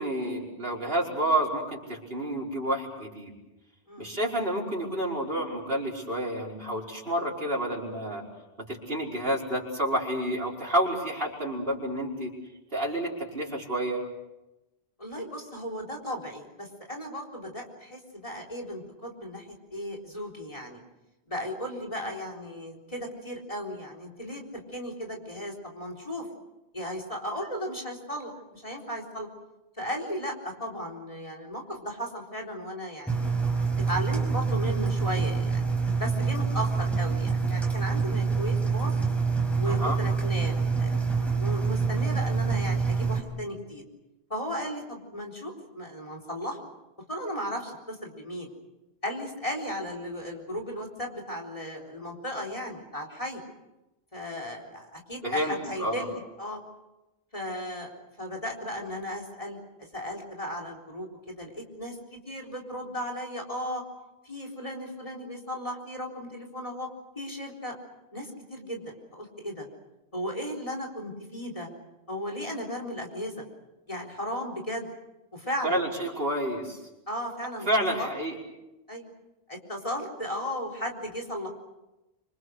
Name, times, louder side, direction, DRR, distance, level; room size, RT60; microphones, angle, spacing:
voice 1, 0.0-3.3 4.0-8.2 8.7-12.3 12.7-14.0 39.7-40.0 55.2-56.1 75.6-76.8 77.7-78.4, right 1 dB, 60° right, -2 dB, 5.3 m, -29 dB
voice 2, 15.0-20.8 21.3-26.3 26.7-29.3 29.8-33.3 33.8-35.6 36.0-38.9 39.6-43.8 44.3-46.6 47.1-48.5 49.0-53.4 54.1-56.6 57.3-57.9 58.2-59.6 59.9-63.8 64.2-66.9 67.2-67.7 68.1-69.7 70.1-71.7 72.1-73.4 73.9-74.9 75.3-75.8 77.1-77.7 78.0-78.1 78.9-79.1 79.5-81.5, equal, 30° left, 2 dB, 4.2 m, -35 dB
Engine, 33.1-43.2, right 5 dB, ahead, 4.9 m, -26 dB
26.5 x 26.0 x 6.5 m, 1.0 s
omnidirectional pair, 1.1 m